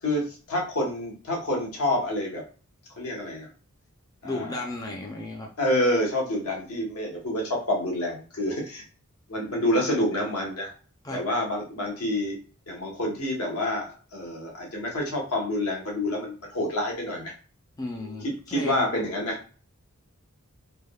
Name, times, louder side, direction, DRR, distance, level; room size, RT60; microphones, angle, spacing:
voice 1, 0.0-2.4 3.0-3.5 4.2-4.6 5.6-8.8 9.3-10.7 11.1-12.4 12.7-17.3 18.0-19.4, left 1 dB, 80° left, -1 dB, 1.0 m, -28 dB
voice 2, 4.2-5.5 11.0-11.2 17.8-19.0, left 2 dB, 15° left, 0 dB, 0.3 m, -34 dB
3.4 x 2.0 x 2.2 m, 0.39 s
head